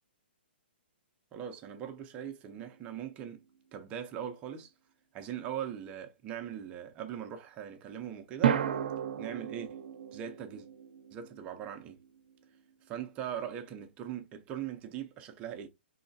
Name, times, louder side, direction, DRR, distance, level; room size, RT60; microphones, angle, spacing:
voice 1, 1.3-3.4 3.7-4.7 5.1-8.6 9.2-9.8 10.1-10.7 11.1-12.0 12.9-15.7, right 9 dB, 20° right, 0.6 m, -40 dB
sound 1, 2.4-3.6 8.4-12.7, right 9 dB, 60° right, 0.6 m, -35 dB
4.9 x 3.2 x 2.6 m
hypercardioid pair, 155°, 6 cm